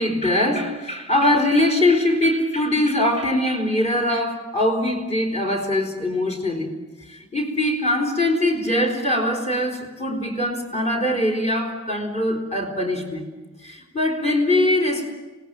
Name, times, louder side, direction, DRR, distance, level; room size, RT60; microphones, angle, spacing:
voice 1, 0.0-6.7 7.1-13.3 13.6-15.1, left 1 dB, 30° left, 5 dB, 4.7 m, -22 dB
26.5 x 19.0 x 9.1 m, 1.2 s
head